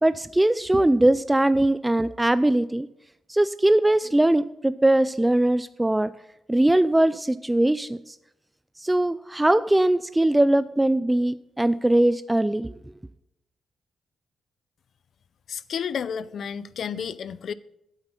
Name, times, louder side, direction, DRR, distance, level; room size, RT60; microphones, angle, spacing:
voice 1, 0.0-2.9 3.3-6.1 6.5-8.2 8.8-12.7, right 1 dB, 10° right, 0.3 m, -21 dB
voice 2, 15.5-17.5, left 7 dB, 65° left, 0.4 m, -31 dB
8.2 x 7.8 x 5.3 m
cardioid pair, 90°, 0 cm